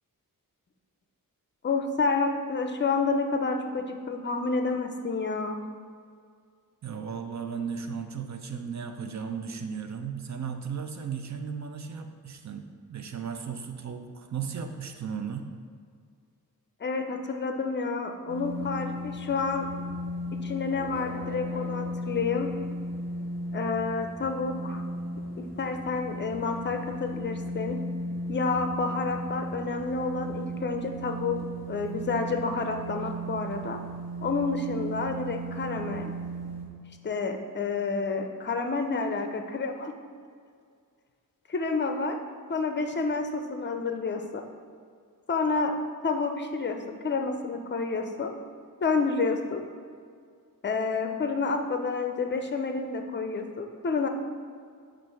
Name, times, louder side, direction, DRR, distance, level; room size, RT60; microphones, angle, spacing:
voice 1, 1.6-5.6 16.8-19.7 20.3-22.5 23.5-24.8 25.4-27.8 28.3-33.8 34.2-36.0 37.0-39.9 41.5-42.2 42.5-44.4 45.3-45.7 46.0-46.8 47.0-48.3 48.8-49.6 50.6-54.1, left 4 dB, 30° left, 6 dB, 0.5 m, -29 dB
voice 2, 6.8-15.5, right 6 dB, 50° right, 6 dB, 0.5 m, -35 dB
sound 1, 18.3-36.7, right 1 dB, 90° right, 1.1 m, -36 dB
7.6 x 2.6 x 5.6 m, 2.1 s
wide cardioid pair, 120°, 35 cm